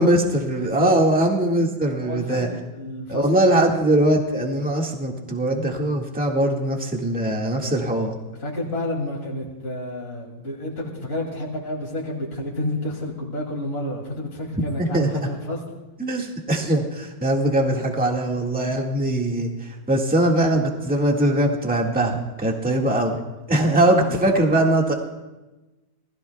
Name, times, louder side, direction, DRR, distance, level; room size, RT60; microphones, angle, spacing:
voice 1, 0.0-2.5 3.1-8.1 14.8-15.1 16.0-23.2 23.5-24.9, right 1 dB, 5° right, 0 dB, 1.7 m, -21 dB
voice 2, 0.6-0.9 2.0-3.2 3.5-3.7 8.4-15.6 23.6-24.1, left 1 dB, 30° left, -3 dB, 2.9 m, -30 dB
28.0 x 19.5 x 2.3 m, 1.1 s
omnidirectional pair, 2.1 m